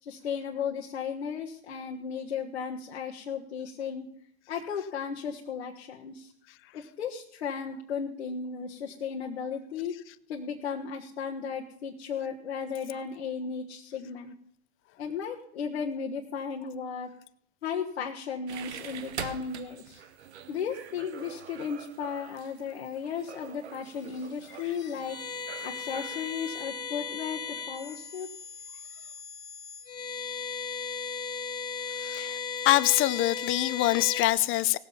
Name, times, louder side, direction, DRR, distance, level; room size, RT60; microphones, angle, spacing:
voice 1, 0.0-4.1 4.5-6.3 6.7-9.9 10.3-14.3 15.0-17.1 17.6-20.0 20.5-25.2 25.6-27.4 27.7-28.3, left 6 dB, 90° left, 1.4 m, -35 dB
sound 1, 18.5-26.6, right 9 dB, 85° right, 1.1 m, -45 dB
sound 2, 23.8-34.3, left 5 dB, 10° left, 2.9 m, -37 dB
voice 2, 31.9-34.8, left 17 dB, 40° left, 0.7 m, -25 dB
18.0 x 7.6 x 5.6 m
hypercardioid pair, 105°, 32 cm